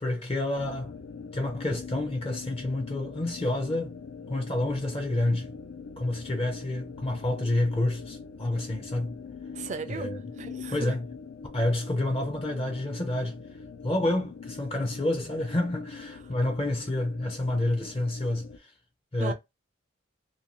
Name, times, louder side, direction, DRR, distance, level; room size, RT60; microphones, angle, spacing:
voice 1, 0.0-1.0 1.3-3.9 4.3-5.6 6.0-9.2 9.9-10.2 10.7-11.0 11.5-13.4 13.8-18.7 19.1-19.3, left 1 dB, 30° left, 0.5 m, -29 dB
sound 1, 0.6-18.6, left 5 dB, 90° left, 0.4 m, -43 dB
voice 2, 9.5-10.9 16.3-16.4 19.2-19.3, right 5 dB, 35° right, 0.4 m, -36 dB
2.6 x 2.2 x 2.9 m
head